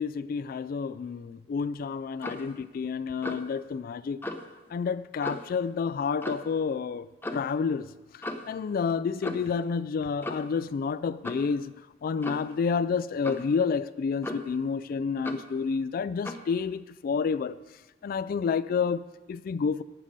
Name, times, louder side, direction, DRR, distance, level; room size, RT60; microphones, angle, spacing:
voice 1, 0.0-4.2 4.7-7.1 7.3-7.9 8.1-11.7 12.0-17.6 18.0-19.8, left 5 dB, 50° left, 0.3 m, -29 dB
Clock, 2.2-2.5 3.2-3.5 4.2-4.5 5.2-5.6 6.2-6.5 7.2-7.5 8.2-8.5 9.2-9.6 10.2-10.6 11.2-11.5 12.2-12.5 13.2-13.5 14.2-14.6 15.2-15.5 16.2-16.5, left 1 dB, 10° left, 0.7 m, -37 dB
12.0 x 8.7 x 5.2 m
head